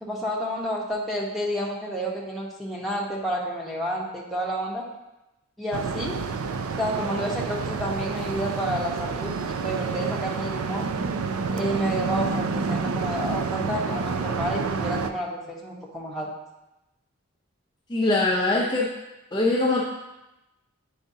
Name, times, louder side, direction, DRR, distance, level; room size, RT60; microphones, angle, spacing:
voice 1, 0.0-4.8 5.6-6.2 6.7-10.9 11.5-16.3, equal, ahead, -5 dB, 1.0 m, -30 dB
sound 1, 5.7-15.1, right 4 dB, 75° right, 0.4 m, -29 dB
voice 2, 17.9-18.9 19.3-19.8, left 2 dB, 20° left, -4 dB, 0.6 m, -22 dB
8.8 x 4.8 x 2.7 m, 0.96 s
head